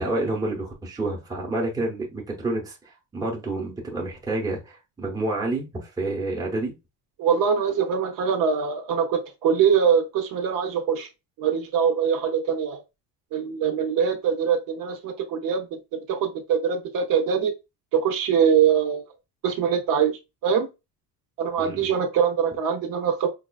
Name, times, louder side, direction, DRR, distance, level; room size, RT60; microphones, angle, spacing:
voice 1, 0.0-6.7 21.6-21.9, right 2 dB, 10° right, 0.8 m, -29 dB
voice 2, 7.2-11.1 11.4-12.8 13.3-17.5 17.9-19.0 19.4-20.7 21.4-23.3, right 7 dB, 55° right, 0.7 m, -23 dB
4.8 x 2.4 x 2.3 m
cardioid pair, 175°, 41 cm